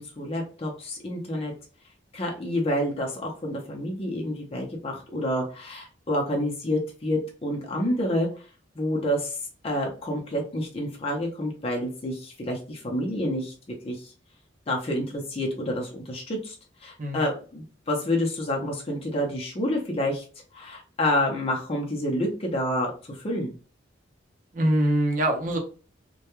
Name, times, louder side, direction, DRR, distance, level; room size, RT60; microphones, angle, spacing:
voice 1, 0.0-1.5 2.1-8.3 8.8-9.4 9.6-13.5 13.8-14.1 14.7-16.5 16.8-20.2 20.5-23.5, left 1 dB, 35° left, -1 dB, 0.6 m, -28 dB
voice 2, 24.5-25.6, right 1 dB, 45° right, 3 dB, 0.7 m, -23 dB
2.2 x 2.2 x 2.9 m, 0.37 s
head